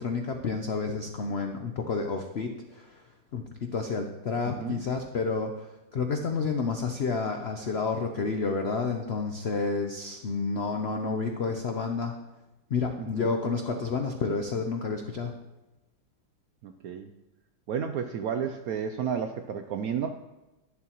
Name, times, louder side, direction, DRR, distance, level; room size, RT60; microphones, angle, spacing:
voice 1, 0.0-3.0 3.3-12.1 12.7-15.3, left 4 dB, 75° left, 4 dB, 0.5 m, -30 dB
voice 2, 4.5-4.8 13.0-13.3 16.6-17.1 17.7-20.1, right 7 dB, 75° right, 7 dB, 0.8 m, -32 dB
11.0 x 11.0 x 3.0 m, 1.0 s
omnidirectional pair, 2.0 m